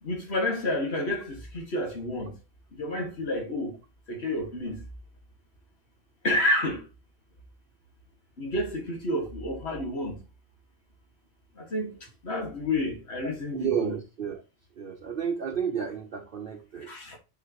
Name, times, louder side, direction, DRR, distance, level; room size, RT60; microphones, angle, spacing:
voice 1, 0.0-2.4 2.7-3.8 4.1-4.8 6.2-6.9 8.4-10.2 11.6-14.0 16.8-17.2, left 1 dB, 75° left, 2.2 m, -30 dB
voice 2, 13.2-14.4 14.8-16.9, right 7 dB, 60° right, 1.0 m, -32 dB
9.6 x 5.0 x 3.0 m
omnidirectional pair, 1.1 m